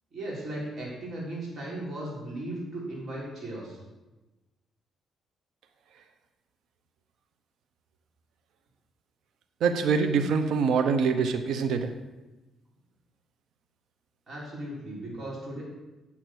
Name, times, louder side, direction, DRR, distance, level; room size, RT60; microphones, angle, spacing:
voice 1, 0.1-3.8 14.3-15.6, right 1 dB, 45° right, -5 dB, 3.9 m, -36 dB
voice 2, 9.6-11.9, right 5 dB, 75° right, 9 dB, 0.8 m, -24 dB
8.4 x 7.1 x 6.2 m, 1.1 s
cardioid pair, 90°, 0 cm